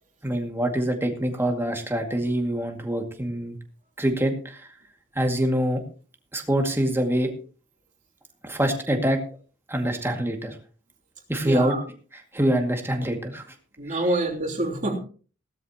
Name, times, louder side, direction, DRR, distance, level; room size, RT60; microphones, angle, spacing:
voice 1, 0.2-3.6 4.0-4.7 5.2-5.8 6.3-7.3 8.4-9.2 9.7-10.6 11.3-11.7 12.3-13.4, right 1 dB, 10° right, 3 dB, 2.2 m, -25 dB
voice 2, 11.4-11.8 13.8-15.0, right 2 dB, 40° right, 0 dB, 3.1 m, -26 dB
17.0 x 13.0 x 3.0 m, 0.39 s
head